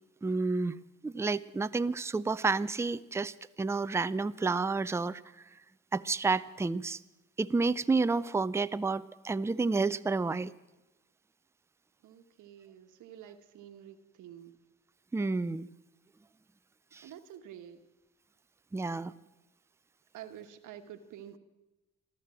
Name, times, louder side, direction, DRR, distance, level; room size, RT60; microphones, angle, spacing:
voice 1, 0.2-0.8 1.0-5.2 5.9-7.0 7.4-10.5 15.1-15.7 16.9-17.0 18.7-19.1, right 3 dB, 10° right, 14 dB, 0.4 m, -30 dB
voice 2, 12.0-14.5 17.0-17.8 20.1-21.4, right 10 dB, 80° right, 6 dB, 1.3 m, -49 dB
14.0 x 13.0 x 7.6 m, 1.0 s
cardioid pair, 90°, 30 cm